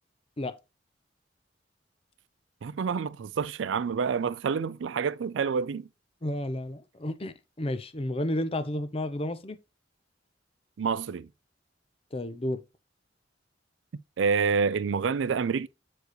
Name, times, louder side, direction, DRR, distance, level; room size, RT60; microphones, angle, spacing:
voice 1, 2.6-5.9 10.8-11.3 14.2-15.7, right 5 dB, 80° right, 0.4 m, -28 dB
voice 2, 6.2-9.6 12.1-12.6, left 1 dB, 30° left, 0.6 m, -32 dB
8.1 x 4.6 x 2.9 m
head